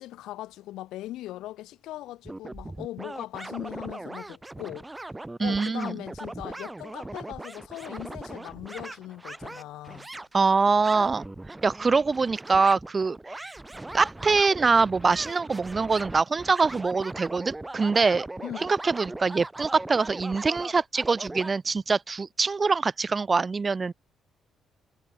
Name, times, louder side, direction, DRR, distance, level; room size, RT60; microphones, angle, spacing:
voice 1, 0.0-4.9 5.4-10.1 18.4-18.7, left 15 dB, 90° left, 4.6 m, -39 dB
sound 1, 2.2-21.5, right 2 dB, 15° right, 5.5 m, -40 dB
voice 2, 5.4-5.9 10.3-11.2 11.6-13.5 13.9-18.3 18.6-23.9, right 4 dB, 30° right, 0.6 m, -24 dB
cardioid pair, 90°, 0 cm